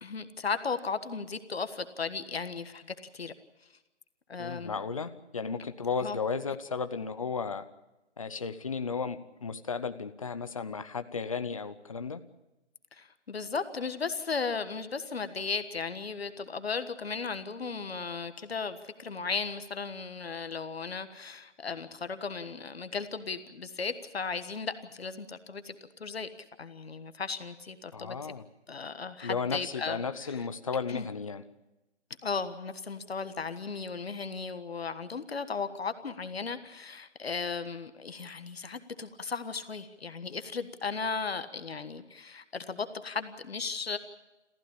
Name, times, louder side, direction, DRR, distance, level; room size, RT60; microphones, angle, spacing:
voice 1, 0.0-3.3 4.3-4.8 6.0-6.2 12.9-25.7 26.0-26.3 26.6-28.3 28.7-30.5 30.9-31.0 32.2-44.0, left 5 dB, 60° left, 10 dB, 1.5 m, -36 dB
voice 2, 4.4-7.6 8.2-12.2 27.9-28.4 29.2-31.4, left 5 dB, 30° left, 10 dB, 0.8 m, -34 dB
25.5 x 15.0 x 8.7 m, 1.0 s
hypercardioid pair, 170°, 35 cm